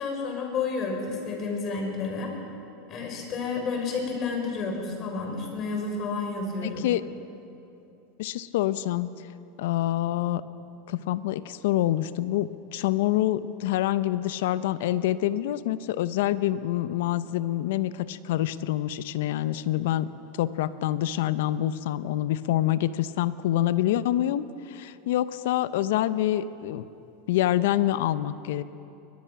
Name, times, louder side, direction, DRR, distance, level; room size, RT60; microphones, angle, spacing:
voice 1, 0.0-2.3 2.9-6.8, left 4 dB, 40° left, 2 dB, 5.6 m, -30 dB
voice 2, 6.6-7.0 8.2-9.1 9.6-10.4 10.9-20.1 20.4-26.8 27.3-28.6, left 13 dB, 70° left, 15 dB, 0.8 m, -26 dB
22.0 x 20.5 x 6.0 m, 2.8 s
hypercardioid pair, 100°, 0 cm